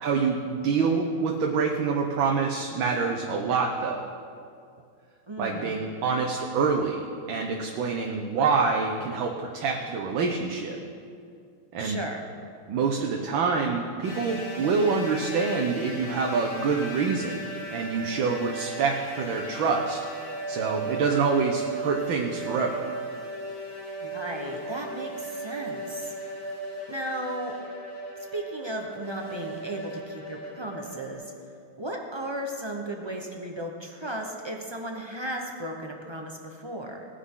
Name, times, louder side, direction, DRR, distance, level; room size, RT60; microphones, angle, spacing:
voice 1, 0.0-4.1 5.4-10.8 11.7-12.0 12.7-17.4 17.7-22.9, right 4 dB, 75° right, 1 dB, 1.7 m, -26 dB
voice 2, 5.3-5.8 11.8-12.2 24.0-26.1 26.9-27.6 28.3-31.2 31.8-37.1, right 1 dB, 30° right, 1 dB, 0.5 m, -35 dB
sound 1, 14.0-31.1, right 2 dB, 85° left, 4.4 m, -37 dB
19.5 x 10.0 x 3.8 m, 2.3 s
omnidirectional pair, 2.2 m